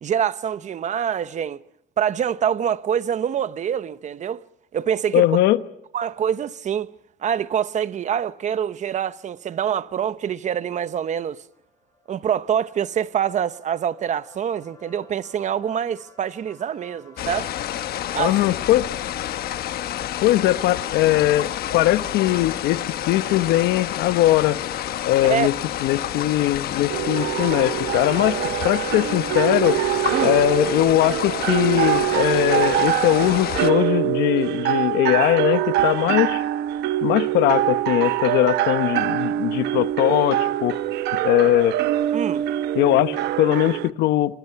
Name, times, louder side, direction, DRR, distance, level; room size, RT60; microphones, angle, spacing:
voice 1, 0.0-1.6 2.0-4.4 4.7-5.3 5.9-6.9 7.2-11.4 12.1-17.5 18.1-18.4 25.2-25.5 30.1-30.4 42.1-42.4, right 8 dB, 45° right, 1.0 m, -25 dB
voice 2, 5.1-5.6 18.2-18.9 20.2-22.8 23.1-24.6 25.0-25.5 25.8-29.8 30.2-36.4 37.0-40.8 41.2-41.8 42.7-44.4, left 15 dB, 85° left, 1.0 m, -20 dB
sound 1, 10.6-19.9, left 2 dB, 20° left, 4.9 m, -53 dB
sound 2, 17.2-33.7, left 11 dB, 65° left, 1.2 m, -29 dB
sound 3, 26.9-43.9, right 13 dB, 80° right, 1.0 m, -24 dB
28.0 x 25.5 x 5.8 m
cardioid pair, 110°, 17 cm